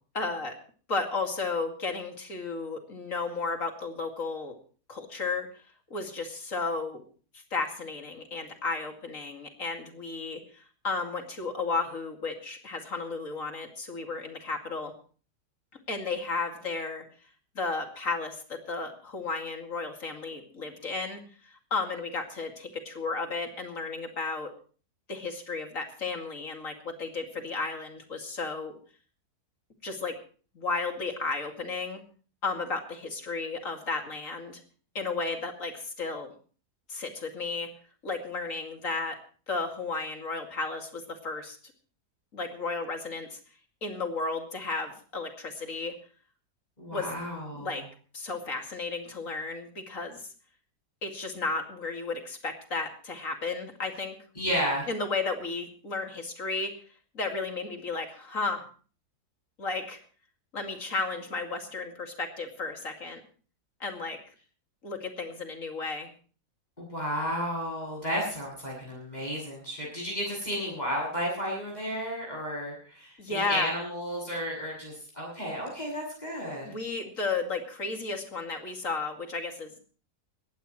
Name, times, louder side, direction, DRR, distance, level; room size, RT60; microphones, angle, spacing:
voice 1, 0.1-0.6 0.9-4.5 4.9-5.5 5.9-7.0 7.3-14.9 15.9-17.1 17.6-21.2 21.7-24.5 25.1-28.7 29.8-30.1 30.5-32.0 32.4-34.6 34.9-36.3 36.9-37.7 38.0-39.2 39.5-41.6 42.3-43.4 43.8-45.9 46.9-47.1 47.5-47.8 48.1-50.2 51.0-54.2 54.9-56.7 57.1-58.6 59.6-60.0 60.5-63.2 63.8-64.2 64.8-66.1 73.2-73.7 76.6-79.7, left 3 dB, 55° left, 4 dB, 2.7 m, -33 dB
voice 2, 46.8-47.8 54.3-54.9 66.8-76.7, equal, 25° left, -4 dB, 8.3 m, -33 dB
20.0 x 16.0 x 3.1 m, 0.40 s
omnidirectional pair, 1.7 m